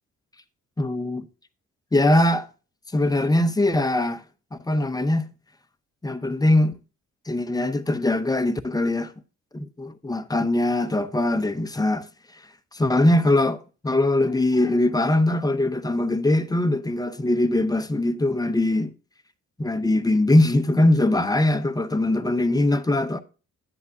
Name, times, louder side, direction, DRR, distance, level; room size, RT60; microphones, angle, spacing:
voice 1, 0.8-1.3 1.9-2.5 2.9-4.2 4.5-5.3 6.0-6.7 7.3-9.1 9.5-12.1 12.7-18.9 19.6-23.2, left 1 dB, 15° left, 0.7 m, -21 dB
10.5 x 8.1 x 2.6 m
cardioid pair, 90°, 30 cm